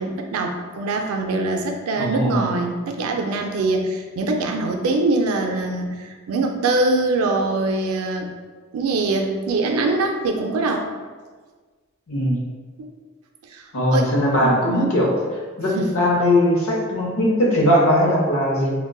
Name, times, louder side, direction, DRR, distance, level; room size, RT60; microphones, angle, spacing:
voice 1, 0.0-8.3 8.7-10.9 12.8-12.9 13.5-15.0 15.8-15.9, right 2 dB, 90° right, 3 dB, 0.4 m, -23 dB
voice 2, 2.0-2.4 12.1-12.4 13.7-15.1 15.6-18.7, left 1 dB, 70° left, -2 dB, 0.7 m, -19 dB
3.6 x 2.1 x 2.3 m, 1.5 s
head